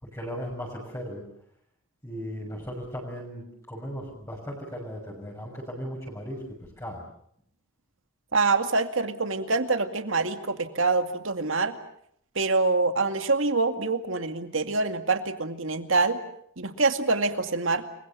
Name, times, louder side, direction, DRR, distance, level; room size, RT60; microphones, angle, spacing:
voice 1, 0.0-1.2 2.0-6.4 6.8-7.0, equal, 15° left, -3 dB, 6.4 m, -37 dB
voice 2, 8.3-11.8 12.4-16.2 16.6-17.8, right 3 dB, 65° right, 7 dB, 2.2 m, -25 dB
29.5 x 23.0 x 7.2 m, 0.70 s
head